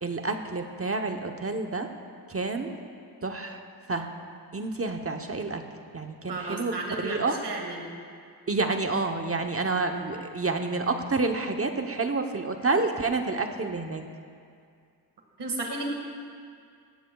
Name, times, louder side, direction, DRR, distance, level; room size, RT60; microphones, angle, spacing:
voice 1, 0.0-1.9 2.3-2.7 3.2-3.6 3.9-4.1 4.5-5.6 5.9-6.7 7.0-7.4 8.5-14.0, right 3 dB, 35° right, 4 dB, 0.9 m, -29 dB
voice 2, 6.3-7.9 15.4-15.8, right 2 dB, 85° right, 1 dB, 2.0 m, -33 dB
17.5 x 15.5 x 2.3 m, 2.3 s
cardioid pair, 70°, 40 cm